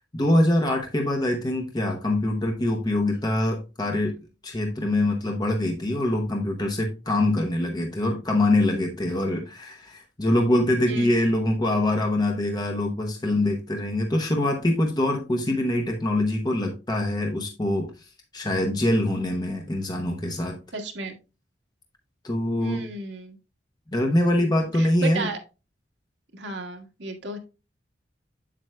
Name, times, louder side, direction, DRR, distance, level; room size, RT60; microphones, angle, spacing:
voice 1, 0.1-4.2 4.4-20.6 22.2-22.8 23.9-25.3, left 1 dB, 25° left, 2 dB, 0.8 m, -24 dB
voice 2, 20.7-21.1 22.6-23.4 24.4-24.5 24.8-25.4 26.3-27.4, right 3 dB, 75° right, 2 dB, 1.5 m, -33 dB
7.8 x 7.5 x 2.2 m, 0.31 s
head